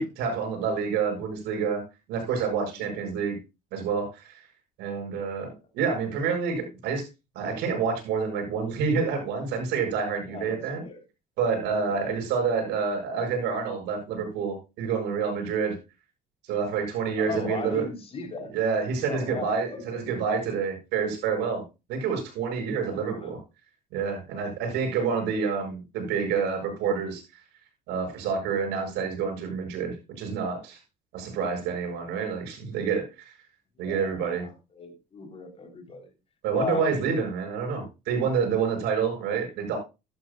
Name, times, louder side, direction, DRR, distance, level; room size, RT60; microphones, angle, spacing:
voice 1, 0.0-1.8 2.1-3.4 3.7-4.3 4.8-5.5 5.7-7.0 7.3-10.8 11.4-15.8 16.5-17.9 18.5-21.6 21.9-23.4 23.9-27.2 27.9-30.8 31.1-33.0 33.8-34.4 36.4-39.8, right 6 dB, 90° right, 3 dB, 6.8 m, -28 dB
voice 2, 10.3-11.0 11.8-12.1 17.2-18.5 19.0-20.0 22.8-23.3 25.1-25.2 33.8-36.1 36.5-37.0, left 4 dB, 35° left, 4 dB, 3.8 m, -37 dB
13.0 x 12.5 x 2.4 m, 0.27 s
cardioid pair, 110°, 17 cm